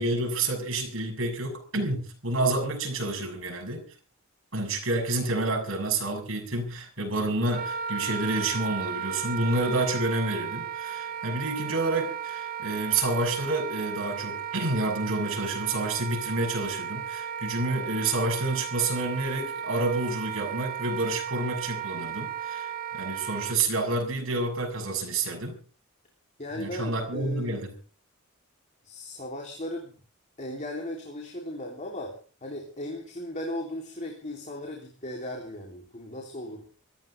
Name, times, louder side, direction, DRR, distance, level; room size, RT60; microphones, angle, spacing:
voice 1, 0.0-3.9 4.5-25.6 26.6-27.7, right 2 dB, 65° right, 2 dB, 6.9 m, -29 dB
Wind instrument woodwind instrument, 7.5-23.6, right 8 dB, 45° right, 1.7 m, -35 dB
voice 2, 26.4-27.6 28.8-29.9 30.4-36.7, left 1 dB, 35° left, 0 dB, 3.5 m, -37 dB
25.5 x 14.0 x 3.6 m, 0.38 s
head